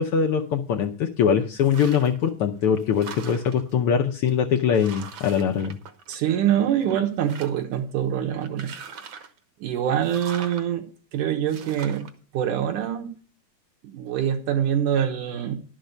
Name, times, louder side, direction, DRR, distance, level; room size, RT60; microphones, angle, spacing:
voice 1, 0.0-5.8, left 7 dB, 85° left, 4 dB, 1.2 m, -22 dB
sound 1, 1.6-2.3 2.6-3.7 4.3-4.4 4.7-6.5 6.8-7.8 8.4-9.4 10.0-10.7 11.5-12.1, right 5 dB, 60° right, 1.3 m, -41 dB
voice 2, 6.1-8.8 9.6-10.9 11.1-12.1 12.3-13.1 13.8-15.6, right 10 dB, 80° right, 2 dB, 2.6 m, -24 dB
11.5 x 5.9 x 6.6 m, 0.40 s
omnidirectional pair, 3.5 m